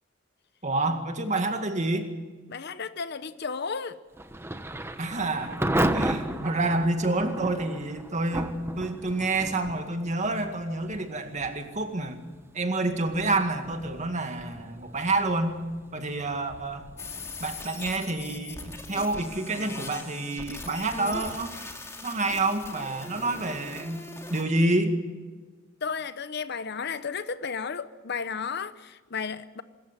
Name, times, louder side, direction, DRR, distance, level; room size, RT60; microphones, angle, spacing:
voice 1, 0.6-2.1 5.0-5.6 5.9-12.2 12.5-15.6 15.9-16.8 17.4-21.5 22.0-24.0 24.3-25.0, right 2 dB, 35° right, 2.1 m, -28 dB
voice 2, 2.5-4.0 25.8-29.6, left 5 dB, 55° left, 0.8 m, -33 dB
Thunder / Rain, 4.1-20.9, right 1 dB, 10° right, 1.0 m, -35 dB
sound 1, 17.0-24.4, left 2 dB, 15° left, 2.4 m, -40 dB
24.5 x 14.0 x 9.9 m
head